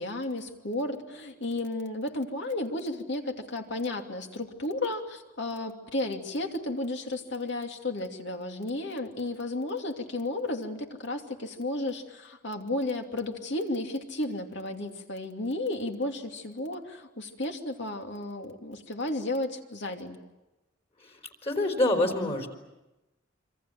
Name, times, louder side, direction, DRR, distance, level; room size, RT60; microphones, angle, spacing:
voice 1, 0.0-20.2, left 2 dB, 60° left, 4 dB, 2.7 m, -33 dB
voice 2, 21.4-22.5, left 1 dB, 30° left, 3 dB, 4.1 m, -26 dB
26.5 x 26.0 x 7.7 m, 1.0 s
head